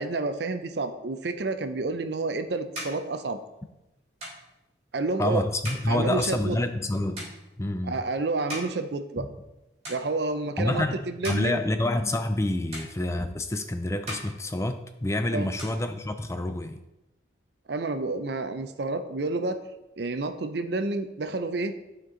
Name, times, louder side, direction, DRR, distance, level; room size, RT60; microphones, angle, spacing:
voice 1, 0.0-3.4 4.9-5.4 5.9-6.6 7.8-9.3 9.9-11.6 15.3-15.5 17.7-19.6 20.0-21.8, right 3 dB, 60° right, 9 dB, 0.6 m, -29 dB
sound 1, 1.9-9.5 9.8-10.5 11.0-12.4 12.7-13.6 13.9-15.1 15.4-16.5, equal, 35° right, 3.1 m, -42 dB
voice 2, 5.2-7.2 7.6-8.0 9.2-9.3 10.6-11.0 11.3-16.8, left 1 dB, 15° left, 7 dB, 0.4 m, -27 dB
11.0 x 4.5 x 3.8 m, 0.95 s
head